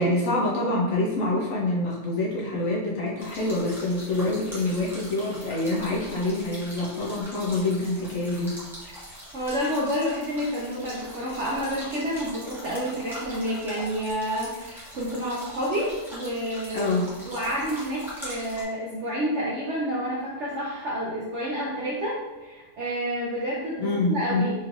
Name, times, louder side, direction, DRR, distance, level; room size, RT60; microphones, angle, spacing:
voice 1, 0.0-8.6 16.7-17.1 23.8-24.4, left 2 dB, 60° left, -4 dB, 0.9 m, -26 dB
sound 1, 3.2-18.6, equal, ahead, 1.0 m, -42 dB
voice 2, 9.3-16.9 17.2-22.1 22.4-24.5, equal, 80° right, -5 dB, 0.6 m, -29 dB
4.3 x 3.2 x 2.4 m, 1.1 s
omnidirectional pair, 2.0 m